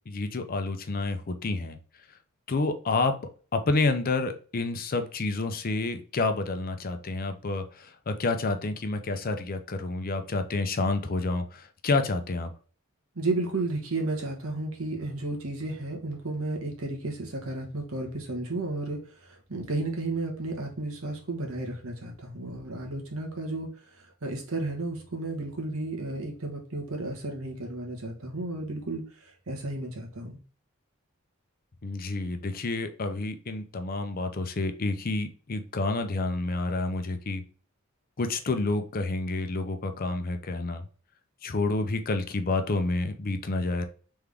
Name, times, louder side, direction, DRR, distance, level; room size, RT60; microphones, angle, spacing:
voice 1, 0.1-1.8 2.5-3.2 3.5-12.5 31.8-37.4 38.2-40.9 41.4-43.9, left 3 dB, 45° left, 7 dB, 0.6 m, -29 dB
voice 2, 13.1-30.4, right 2 dB, 85° right, 1 dB, 1.3 m, -33 dB
3.6 x 3.5 x 3.4 m, 0.40 s
head